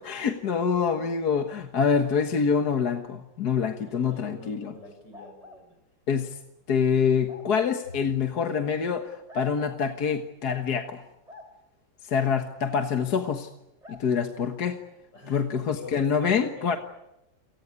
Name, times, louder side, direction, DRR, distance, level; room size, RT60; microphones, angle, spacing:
voice 1, 0.0-4.7 6.1-6.4 6.7-11.0 12.0-13.5 13.9-14.8 15.3-16.8, left 6 dB, 60° left, 6 dB, 1.9 m, -26 dB
voice 2, 3.9-5.8 15.1-16.8, left 1 dB, 80° left, 5 dB, 7.6 m, -45 dB
sound 1, 5.1-5.6 7.3-7.5 9.3-9.8 11.2-11.5 13.8-14.0, left 2 dB, 20° right, 3.5 m, -47 dB
29.0 x 19.0 x 9.6 m, 0.90 s
omnidirectional pair, 1.9 m